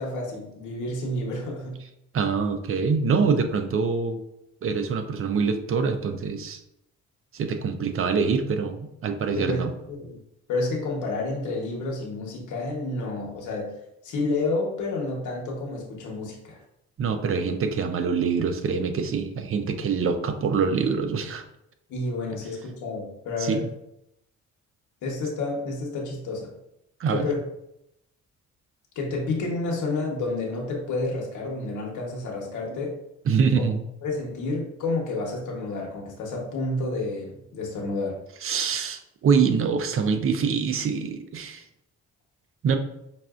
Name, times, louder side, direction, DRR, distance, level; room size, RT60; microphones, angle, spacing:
voice 1, 0.0-1.8 9.4-10.2 10.5-13.7 14.0-16.6 21.9-23.6 25.0-26.5 27.1-27.4 28.9-33.0 33.5-33.6 34.0-38.2, left 2 dB, 80° left, -1 dB, 1.0 m, -30 dB
voice 2, 2.1-4.2 4.6-6.6 7.3-9.7 17.0-21.4 23.4-23.6 27.0-27.3 33.3-33.8 38.4-41.6 42.6-42.8, right 5 dB, 45° right, 7 dB, 0.5 m, -25 dB
5.4 x 2.5 x 2.4 m, 0.83 s
cardioid pair, 90°, 30 cm